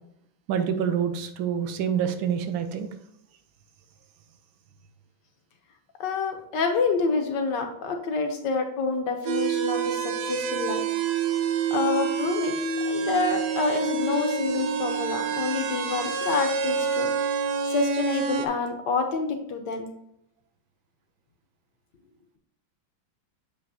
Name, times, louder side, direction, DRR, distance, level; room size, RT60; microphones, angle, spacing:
voice 1, 0.5-2.9, right 8 dB, 90° right, 9 dB, 1.5 m, -27 dB
voice 2, 6.0-10.8 11.7-12.5 12.8-17.1 17.7-19.9, left 4 dB, 70° left, 5 dB, 1.3 m, -27 dB
sound 1, 9.3-18.5, right 6 dB, 70° right, 1.0 m, -27 dB
7.4 x 5.6 x 2.7 m, 0.76 s
omnidirectional pair, 2.2 m